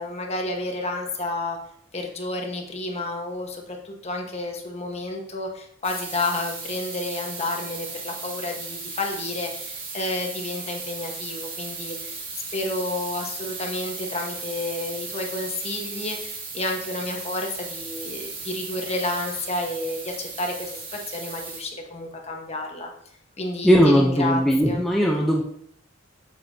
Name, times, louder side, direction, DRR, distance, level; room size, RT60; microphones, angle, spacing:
voice 1, 0.0-1.6 1.9-12.2 12.5-22.9 23.4-24.4 24.7-24.8, left 2 dB, 30° left, 1 dB, 1.3 m, -30 dB
sound 1, 5.8-21.6, right 4 dB, 50° right, 2.3 m, -36 dB
voice 2, 23.6-25.4, equal, ahead, -2 dB, 0.7 m, -18 dB
7.8 x 7.2 x 2.8 m, 0.67 s
head